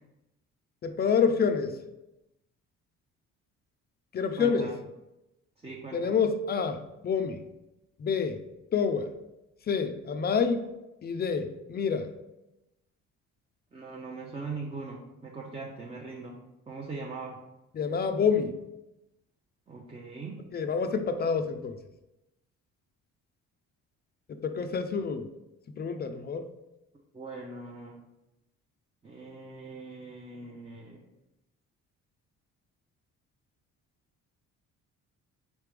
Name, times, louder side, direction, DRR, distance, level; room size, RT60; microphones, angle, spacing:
voice 1, 0.8-1.7 4.1-4.7 5.9-6.8 7.0-7.4 8.0-8.4 8.7-9.1 9.7-10.6 11.0-12.1 17.8-18.5 20.5-21.8 24.4-25.3 25.8-26.4, left 6 dB, 35° left, 8 dB, 0.4 m, -27 dB
voice 2, 4.4-4.7 5.6-6.2 13.7-17.4 19.7-20.4 27.1-28.0 29.0-31.1, right 3 dB, 20° right, -1 dB, 0.6 m, -41 dB
4.1 x 3.3 x 3.3 m, 0.94 s
cardioid pair, 90°, 31 cm